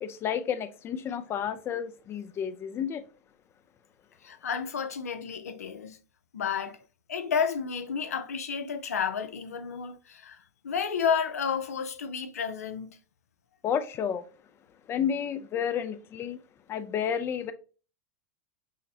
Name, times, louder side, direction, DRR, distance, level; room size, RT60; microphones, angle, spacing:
voice 1, 0.0-3.0 13.6-14.3 14.9-16.4 16.7-17.5, left 8 dB, 30° left, 0.4 m, -31 dB
voice 2, 4.2-6.0 6.3-6.8 7.1-10.4 10.6-13.0, left 6 dB, 90° left, 0.5 m, -31 dB
6.3 x 2.1 x 2.7 m
hypercardioid pair, 105°, 8 cm